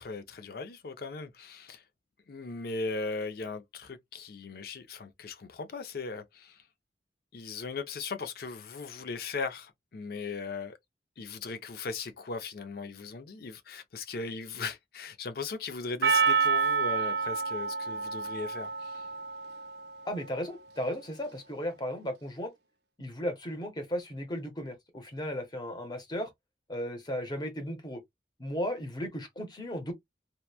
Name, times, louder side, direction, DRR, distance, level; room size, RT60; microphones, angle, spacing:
voice 1, 0.0-1.8 2.3-6.6 7.3-10.8 11.2-19.0, left 4 dB, 55° left, 0.5 m, -38 dB
Percussion, 16.0-20.3, right 5 dB, 65° right, 0.5 m, -29 dB
voice 2, 20.0-22.5 23.0-26.3 26.7-28.0 28.4-29.9, equal, 25° left, 0.8 m, -35 dB
2.9 x 2.1 x 2.3 m
head